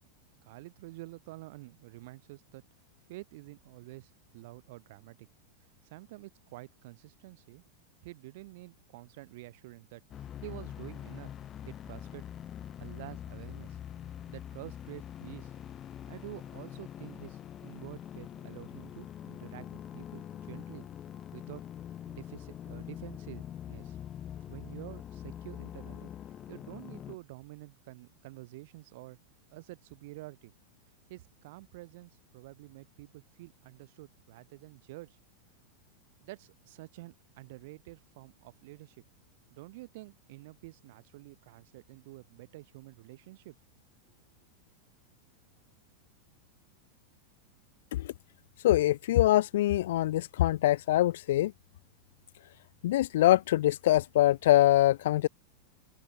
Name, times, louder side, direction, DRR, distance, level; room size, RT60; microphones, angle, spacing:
voice 1, 0.4-2.6 3.1-5.2 5.8-7.6 8.0-11.3 11.7-12.3 12.8-13.8 14.3-15.5 16.1-20.9 21.3-21.6 22.1-24.0 24.5-26.1 26.5-29.2 29.5-30.5 31.1-35.2 36.2-39.0 39.5-43.6, right 20 dB, 55° right, 7.3 m, -48 dB
sound 1, 10.1-27.2, left 10 dB, 30° left, 1.6 m, -44 dB
voice 2, 48.6-51.5 52.8-55.3, left 14 dB, 60° left, 0.5 m, -24 dB
open air
figure-of-eight pair, 90°, 0 cm